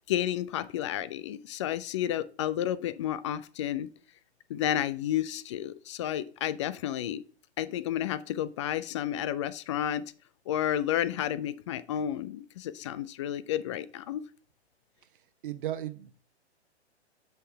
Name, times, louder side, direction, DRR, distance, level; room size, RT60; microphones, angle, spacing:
voice 1, 0.1-3.9 4.5-7.2 7.6-10.0 10.5-14.2, left 11 dB, 30° left, 15 dB, 0.4 m, -31 dB
voice 2, 15.4-16.1, right 12 dB, 50° right, 9 dB, 1.1 m, -35 dB
8.1 x 5.7 x 3.4 m, 0.39 s
figure-of-eight pair, 115°, 34 cm